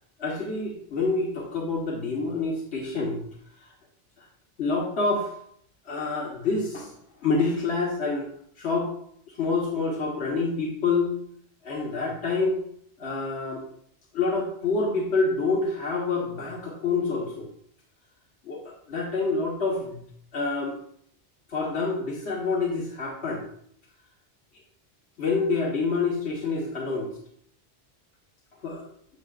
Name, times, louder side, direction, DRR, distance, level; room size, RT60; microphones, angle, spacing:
voice 1, 0.2-3.2 4.6-5.3 5.9-6.9 7.2-8.3 8.6-8.9 9.4-11.1 11.6-12.6 13.0-13.6 14.1-17.5 18.5-18.6 18.9-20.0 20.3-20.8 21.5-23.4 25.2-27.1 28.6-28.8, left 3 dB, 80° left, -3 dB, 1.6 m, -27 dB
13.5 x 6.3 x 2.5 m, 0.66 s
omnidirectional pair, 1.1 m